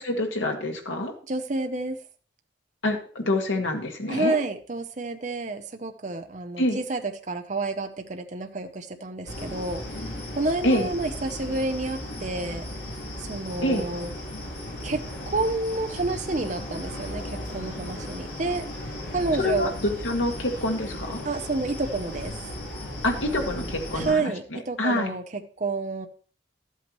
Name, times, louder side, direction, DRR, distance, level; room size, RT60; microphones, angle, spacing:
voice 1, 0.1-1.1 2.8-4.4 6.6-6.8 10.6-10.9 13.6-13.8 19.4-21.2 23.0-24.3 24.8-25.2, left 1 dB, 90° left, 2 dB, 1.9 m, -26 dB
voice 2, 1.2-2.0 4.1-12.6 13.2-14.1 14.8-18.6 19.1-19.7 21.2-22.4 23.9-26.1, right 3 dB, 40° right, 6 dB, 0.7 m, -29 dB
sound 1, 9.3-24.1, left 1 dB, 60° left, 3.6 m, -36 dB
12.5 x 8.3 x 3.1 m, 0.41 s
head